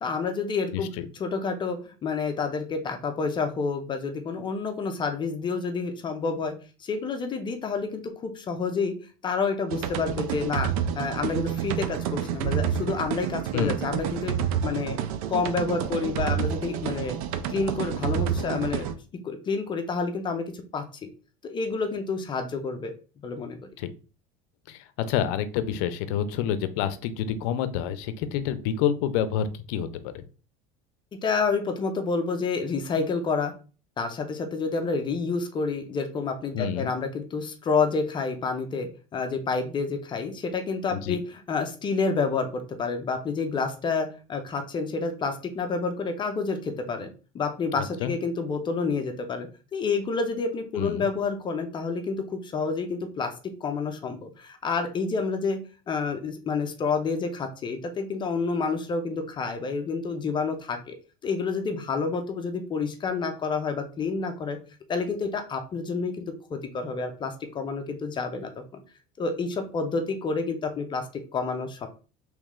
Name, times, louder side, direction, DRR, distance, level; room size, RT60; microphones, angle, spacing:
voice 1, 0.0-0.9 1.2-6.5 6.8-9.0 9.2-14.4 14.6-15.0 15.3-17.2 17.5-18.9 19.2-21.1 21.4-22.9 23.2-23.6 31.2-33.5 34.0-47.1 47.3-53.3 53.6-55.6 55.9-60.9 61.2-64.6 64.9-68.8 69.2-71.1 71.3-71.9, left 4 dB, 25° left, 5 dB, 0.5 m, -29 dB
voice 2, 0.7-1.0 13.5-13.8 23.8-23.9 24.7-30.2 36.5-36.9 40.9-41.2 47.8-48.1 50.8-51.1, left 9 dB, 75° left, 12 dB, 0.5 m, -28 dB
sound 1, 9.7-18.9, right 9 dB, 90° right, 0.5 m, -29 dB
3.1 x 3.1 x 3.6 m, 0.36 s
cardioid pair, 140°, 18 cm